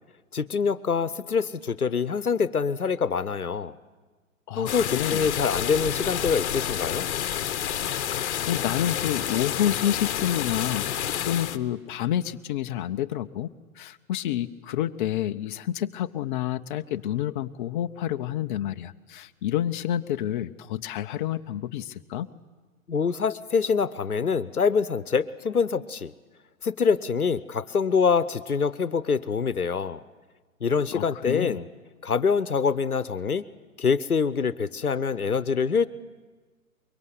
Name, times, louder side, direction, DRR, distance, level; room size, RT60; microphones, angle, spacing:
voice 1, 0.3-3.7 4.6-7.1 22.9-26.1 26.6-30.0 30.6-31.7 32.0-33.4 33.8-35.9, left 5 dB, 90° left, 16 dB, 1.0 m, -25 dB
voice 2, 4.5-5.2 8.1-13.5 13.8-22.3 30.9-31.6, left 11 dB, 35° left, 8 dB, 0.7 m, -29 dB
sound 1, 4.7-11.6, left 10 dB, 50° left, 1.2 m, -29 dB
23.5 x 23.0 x 8.1 m, 1.3 s
figure-of-eight pair, 120°, 43 cm